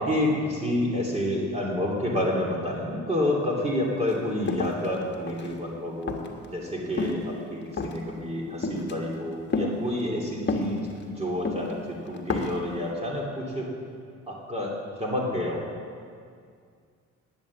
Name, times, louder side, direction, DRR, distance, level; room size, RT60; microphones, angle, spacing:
voice 1, 0.0-6.2 6.5-13.7 14.3-15.7, left 1 dB, 20° right, -3 dB, 2.7 m, -29 dB
sound 1, 4.1-4.2 4.5-5.6 6.1-6.5 6.9-7.3 7.7-8.1 8.6-8.9 9.5-9.7 10.5-11.0 11.5-11.7 12.1-12.6, left 3 dB, 35° left, 1.3 m, -29 dB
10.5 x 8.9 x 7.3 m, 2.2 s
cardioid pair, 90°, 30 cm